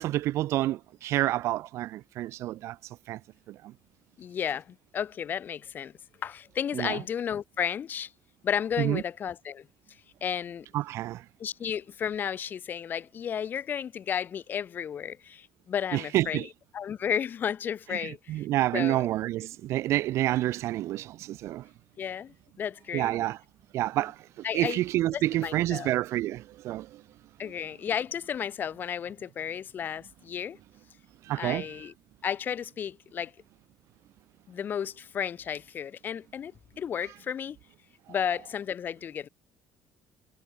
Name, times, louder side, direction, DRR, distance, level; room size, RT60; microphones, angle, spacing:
voice 1, 0.0-3.2 3.5-3.7 6.7-7.0 8.8-9.0 10.7-11.2 15.9-16.5 17.9-21.7 22.9-23.4 23.7-27.0 31.2-31.8 38.1-38.2, right 15 dB, 65° right, 0.4 m, -29 dB
voice 2, 4.2-5.9 6.2-8.1 8.4-9.7 10.2-10.7 11.4-16.5 16.7-18.4 18.7-19.1 22.0-23.2 24.4-24.8 25.1-25.9 27.4-30.6 31.4-31.9 32.2-33.3 34.5-37.6 38.1-39.3, left 8 dB, 40° left, 0.7 m, -33 dB
cardioid pair, 130°, 5 cm